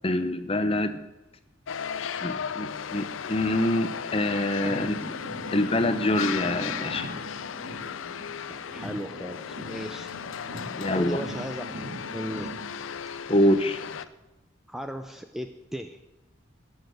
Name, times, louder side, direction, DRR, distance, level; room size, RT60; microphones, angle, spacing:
voice 1, 0.0-1.0 2.2-5.1 5.5-7.1 10.8-11.2 13.3-13.8, left 1 dB, 30° left, 10 dB, 0.7 m, -25 dB
sound 1, 1.7-14.1, left 7 dB, 80° left, 0.5 m, -36 dB
sound 2, 4.6-8.4 8.7-12.7, right 1 dB, 65° right, 2.9 m, -41 dB
voice 2, 8.5-10.1 10.9-11.7 12.1-12.6 14.7-16.0, equal, ahead, 7 dB, 0.4 m, -36 dB
11.5 x 6.5 x 9.2 m, 0.97 s
head